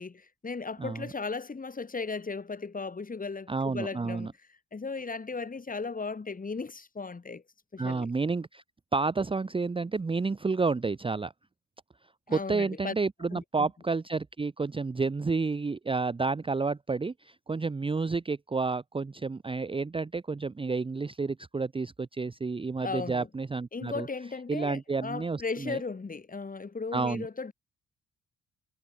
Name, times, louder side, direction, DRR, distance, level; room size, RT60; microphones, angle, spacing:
voice 1, 0.0-4.3 4.7-7.4 7.7-8.1 12.3-12.9 13.3-13.7 22.8-23.3 23.7-27.5, left 4 dB, 25° left, 3.9 m, -36 dB
voice 2, 3.5-4.3 7.8-8.6 8.9-11.3 12.3-24.1 24.5-25.8 26.9-27.3, right 4 dB, 15° right, 0.8 m, -30 dB
cardioid pair, 90°, 30 cm